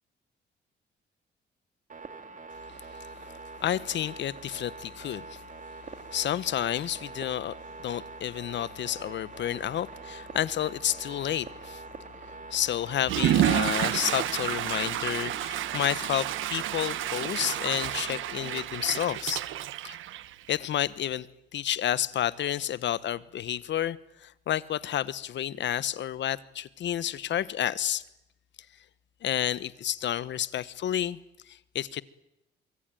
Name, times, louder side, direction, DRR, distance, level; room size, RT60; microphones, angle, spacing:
sound 1, 1.9-18.6, right 4 dB, 40° right, 3.1 m, -45 dB
voice 1, 3.6-5.4 6.1-7.5 7.8-11.8 12.5-19.4 19.8-20.0 20.5-21.3 21.5-28.0 29.2-31.2 31.5-32.0, left 11 dB, 65° left, 1.1 m, -30 dB
sound 2, 8.2-18.0, left 1 dB, 10° left, 7.4 m, -61 dB
Water / Toilet flush, 13.0-20.7, right 13 dB, 80° right, 1.1 m, -30 dB
24.5 x 24.5 x 9.2 m
cardioid pair, 90°, 20 cm